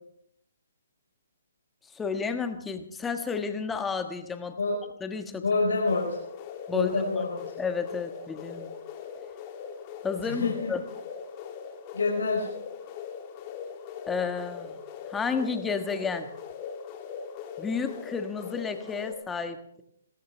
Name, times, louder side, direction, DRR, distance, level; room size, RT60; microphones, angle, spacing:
voice 1, 1.9-4.6 5.0-5.4 6.7-6.9 7.2-7.3 7.6-8.7 10.0-10.8 14.1-14.8 15.1-16.3 17.6-19.8, left 5 dB, 10° left, 7 dB, 1.4 m, -31 dB
voice 2, 5.4-6.2 6.7-7.4 10.2-10.7 11.9-12.5, left 3 dB, 80° left, -2 dB, 4.9 m, -27 dB
sound 1, 5.9-19.1, left 7 dB, 30° left, 2.8 m, -40 dB
28.5 x 14.0 x 3.4 m, 0.70 s
hypercardioid pair, 140°, 0 cm